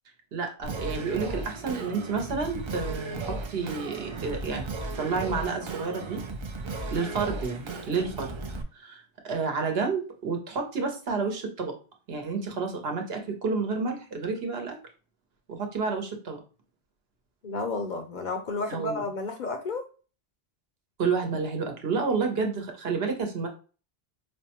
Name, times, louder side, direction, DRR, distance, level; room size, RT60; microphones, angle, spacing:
voice 1, 0.3-4.7 5.0-6.2 6.9-8.3 8.7-11.7 12.1-14.8 15.5-16.4 18.7-19.1 21.0-23.5, right 4 dB, 70° right, 3 dB, 1.1 m, -30 dB
Singing, 0.6-8.6, right 3 dB, 50° right, 0.3 m, -35 dB
voice 2, 17.4-19.8, left 3 dB, 55° left, 5 dB, 0.6 m, -31 dB
5.1 x 2.1 x 2.9 m, 0.37 s
omnidirectional pair, 1.1 m